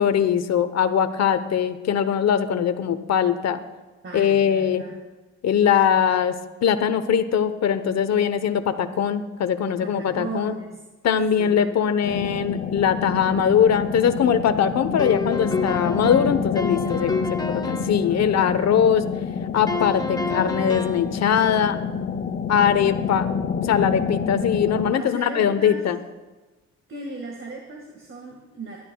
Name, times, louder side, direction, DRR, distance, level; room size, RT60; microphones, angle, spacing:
voice 1, 0.0-3.6 4.1-4.8 5.4-6.3 6.6-10.6 11.0-17.1 17.5-19.0 19.5-21.8 22.5-23.3 23.6-26.0, left 8 dB, 60° left, 10 dB, 1.0 m, -21 dB
voice 2, 4.0-5.0 9.8-10.8 11.4-11.8 16.8-18.4 24.9-25.8 26.9-28.8, right 3 dB, 40° right, 0 dB, 1.9 m, -37 dB
sound 1, 12.0-24.9, left 6 dB, 35° left, 0.6 m, -28 dB
sound 2, 15.0-18.0 19.7-21.1, left 3 dB, 15° left, 0.9 m, -28 dB
20.5 x 12.0 x 2.3 m, 1.2 s
cardioid pair, 90°, 30 cm